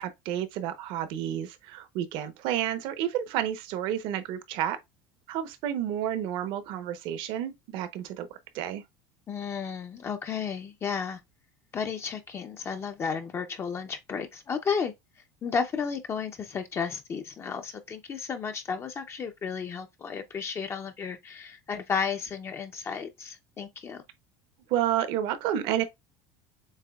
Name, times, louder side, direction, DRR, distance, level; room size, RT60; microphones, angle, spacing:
voice 1, 0.0-4.8 5.3-8.3 8.5-8.8 24.7-25.8, right 11 dB, 65° right, 0.8 m, -30 dB
voice 2, 9.3-11.2 11.7-14.9 15.4-24.0, left 6 dB, 25° left, 0.6 m, -33 dB
7.3 x 2.8 x 2.3 m
cardioid pair, 140°, 9 cm